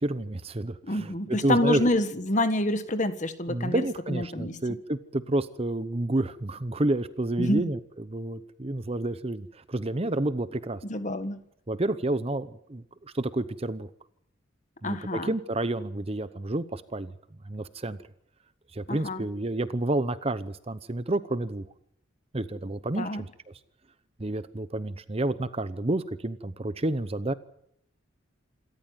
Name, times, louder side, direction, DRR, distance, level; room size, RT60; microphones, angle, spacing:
voice 1, 0.0-1.9 3.5-10.8 11.7-12.8 13.1-13.9 14.8-17.1 17.5-18.0 18.7-21.7 22.3-23.3 24.2-27.3, right 1 dB, 30° right, 14 dB, 0.8 m, -29 dB
voice 2, 0.8-4.6 7.4-7.7 10.8-11.4 14.8-15.3 18.9-19.2 23.0-23.2, left 1 dB, 40° left, 10 dB, 1.5 m, -28 dB
27.0 x 13.5 x 9.1 m, 0.76 s
head